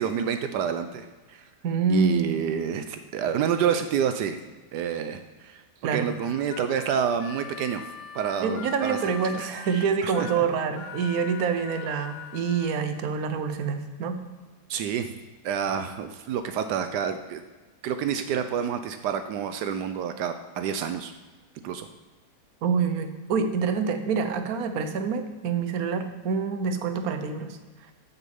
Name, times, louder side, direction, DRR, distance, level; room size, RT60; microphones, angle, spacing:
voice 1, 0.0-1.5 1.9-4.4 4.7-7.9 8.1-9.0 9.3-10.5 14.7-15.1 15.4-17.4 17.8-21.1 21.6-21.9, right 8 dB, 85° right, 8 dB, 1.2 m, -28 dB
voice 2, 1.6-2.4 5.8-6.1 8.4-14.2 22.6-27.6, right 5 dB, 65° right, 8 dB, 1.3 m, -26 dB
Harmonica, 6.2-12.8, left 8 dB, 85° left, 1.4 m, -42 dB
8.5 x 7.1 x 7.0 m, 1.3 s
omnidirectional pair, 1.8 m